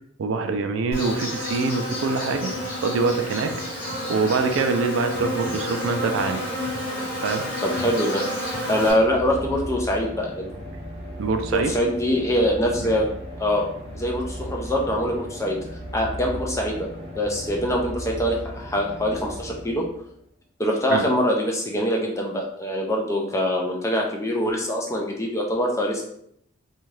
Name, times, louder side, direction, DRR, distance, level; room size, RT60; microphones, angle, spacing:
voice 1, 0.2-3.5 4.1-6.4 7.2-7.5 11.2-11.7 12.8-12.9 20.9-21.1, right 4 dB, 70° right, 7 dB, 0.3 m, -24 dB
Insect, 0.9-8.9, equal, 40° left, 1.2 m, -30 dB
voice 2, 7.6-8.2 8.7-10.5 11.5-13.1 13.4-13.7 13.9-15.6 15.9-16.9 17.2-19.8 20.6-26.0, equal, 15° left, 0 dB, 0.4 m, -24 dB
sound 1, 8.3-20.2, equal, 30° right, 0.7 m, -36 dB
2.6 x 2.3 x 3.2 m, 0.72 s
head